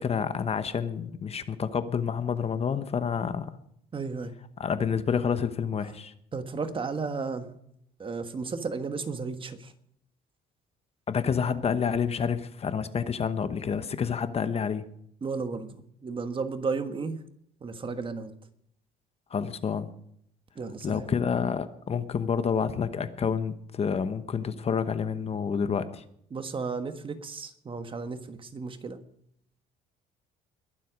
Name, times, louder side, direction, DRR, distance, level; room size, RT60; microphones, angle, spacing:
voice 1, 0.0-3.5 4.6-6.1 11.1-14.8 19.3-19.9 20.8-26.0, left 6 dB, 35° left, 11 dB, 1.0 m, -28 dB
voice 2, 3.9-4.3 5.8-5.9 6.3-7.6 8.0-9.7 15.2-15.8 16.0-17.2 17.6-18.3 20.5-21.1 26.3-29.0, right 4 dB, 30° right, 8 dB, 1.5 m, -33 dB
21.5 x 7.7 x 5.2 m, 0.70 s
cardioid pair, 110°, 17 cm